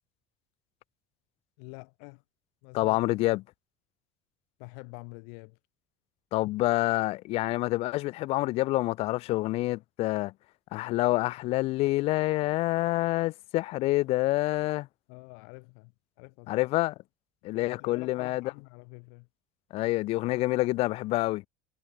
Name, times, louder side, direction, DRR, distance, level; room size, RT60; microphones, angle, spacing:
voice 1, 1.6-2.2 2.6-3.0 4.6-5.6 15.1-15.9 16.2-16.7 17.6-19.3, left 40 dB or more, 70° left, 2.8 m, -46 dB
voice 2, 2.7-3.4 6.3-10.3 10.7-14.9 16.5-16.9 17.4-18.5 19.7-21.4, left 19 dB, 40° left, 0.4 m, -27 dB
cardioid pair, 175°, 16 cm